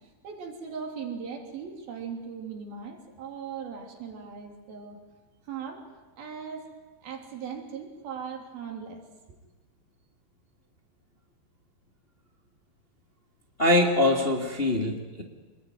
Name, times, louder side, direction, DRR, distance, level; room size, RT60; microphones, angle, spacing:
voice 1, 0.2-5.0 5.5-5.9 6.2-6.7 7.0-9.0, right 6 dB, 80° right, 2 dB, 5.0 m, -38 dB
voice 2, 13.6-15.2, left 1 dB, 20° left, 1 dB, 1.7 m, -23 dB
27.0 x 21.0 x 9.5 m, 1.2 s
omnidirectional pair, 4.2 m